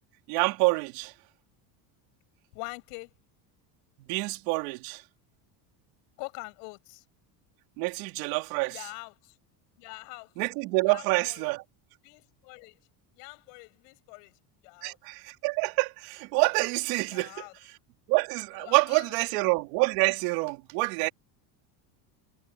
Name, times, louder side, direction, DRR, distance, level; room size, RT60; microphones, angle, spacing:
voice 1, 0.3-1.1 4.1-5.0 7.8-8.8 10.4-11.6 14.8-17.4 18.1-21.1, right 26 dB, 75° right, 3.2 m, -27 dB
voice 2, 2.5-3.1 6.2-7.0 8.7-9.4 9.8-10.3 10.8-11.5 12.0-12.8 13.2-15.0 17.1-17.5 18.5-19.2, left 33 dB, 80° left, 7.8 m, -44 dB
cardioid pair, 170°, 48 cm